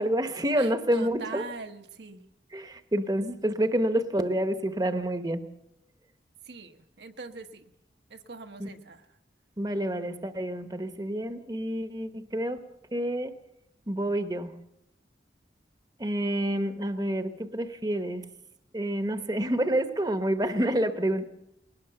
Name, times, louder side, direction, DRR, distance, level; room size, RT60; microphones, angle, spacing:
voice 1, 0.0-1.4 2.5-5.4 8.6-8.7 9.6-12.6 12.9-13.3 13.9-14.5 16.0-18.3 18.7-21.3, right 1 dB, 20° right, 9 dB, 0.9 m, -28 dB
voice 2, 0.6-2.2 6.5-7.7 8.1-9.1, right 3 dB, 75° right, 6 dB, 1.2 m, -42 dB
20.5 x 18.5 x 6.9 m, 0.87 s
head